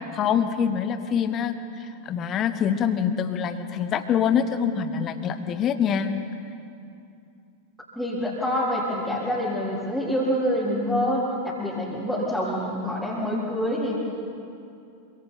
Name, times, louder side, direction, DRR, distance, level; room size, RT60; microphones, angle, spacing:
voice 1, 0.1-6.1, left 8 dB, 30° left, 10 dB, 1.2 m, -25 dB
voice 2, 8.0-14.0, equal, ahead, -10 dB, 4.0 m, -26 dB
26.5 x 24.5 x 4.2 m, 2.6 s
figure-of-eight pair, 90°, 0 cm